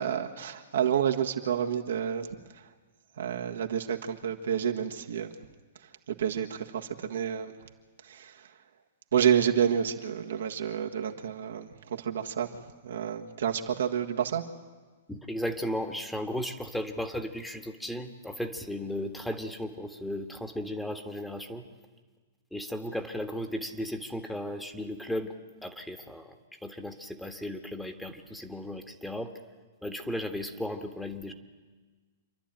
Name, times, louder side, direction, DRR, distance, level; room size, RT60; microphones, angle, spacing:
voice 1, 0.0-2.4 3.2-5.4 6.1-7.5 8.0-8.5 9.1-14.4, right 8 dB, 70° right, 3 dB, 1.6 m, -29 dB
voice 2, 15.1-21.6 22.5-25.3 25.6-29.3 29.8-31.3, left 1 dB, 5° left, 6 dB, 1.5 m, -35 dB
27.0 x 11.5 x 9.1 m, 1.4 s
hypercardioid pair, 115°, 0 cm